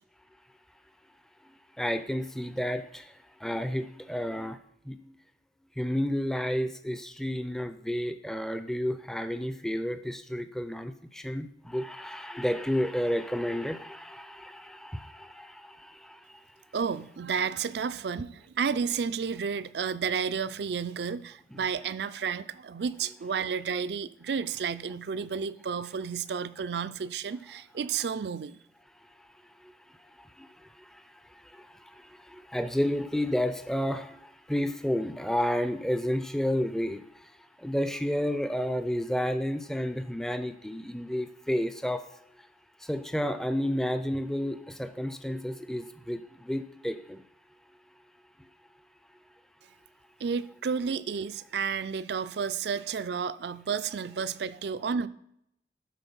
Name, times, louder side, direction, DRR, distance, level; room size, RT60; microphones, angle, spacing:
voice 1, 1.4-4.6 4.8-5.2 5.8-16.4 21.5-21.6 29.6-29.7 30.2-37.3 37.6-42.1 42.8-47.2, equal, 5° left, 0.4 m, -31 dB
voice 2, 16.7-28.6 50.2-55.1, right 6 dB, 65° right, 0.4 m, -31 dB
12.0 x 4.4 x 5.4 m
head